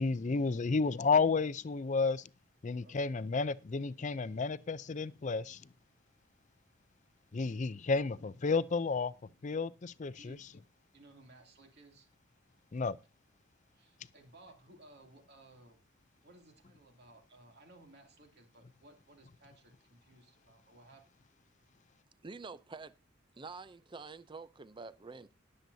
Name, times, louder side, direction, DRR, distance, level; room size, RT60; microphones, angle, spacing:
voice 1, 0.0-2.3 2.6-5.6 7.3-9.1 9.4-10.5 12.7-13.0, left 4 dB, 35° left, 0.5 m, -32 dB
voice 2, 2.8-3.1 10.1-10.4 10.9-12.1 13.7-15.8 16.2-21.0, right 2 dB, 55° right, 2.7 m, -59 dB
voice 3, 22.2-22.9 23.4-25.3, right 4 dB, 25° right, 0.5 m, -47 dB
19.5 x 7.7 x 2.7 m
head